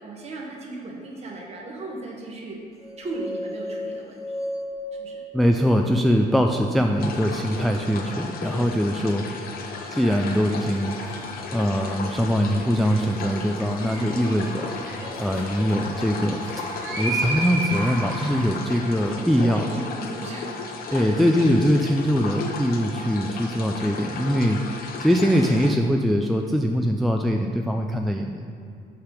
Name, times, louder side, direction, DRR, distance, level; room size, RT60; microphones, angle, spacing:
voice 1, 0.0-2.6 3.0-4.2 4.9-5.2 18.7-20.5 20.9-21.2, right 2 dB, 40° right, -1 dB, 1.4 m, -36 dB
sound 1, 2.8-6.9, left 1 dB, 20° left, 1.0 m, -35 dB
voice 2, 5.3-9.2 9.9-11.0 11.5-14.7 15.2-16.4 17.0-19.6 20.9-24.6 25.0-28.4, equal, ahead, 3 dB, 0.3 m, -22 dB
sound 2, 7.0-25.7, left 4 dB, 60° left, 0.8 m, -35 dB
sound 3, 10.1-18.8, right 2 dB, 15° right, 1.6 m, -34 dB
5.8 x 5.8 x 4.9 m, 2.5 s
cardioid pair, 110°, 17 cm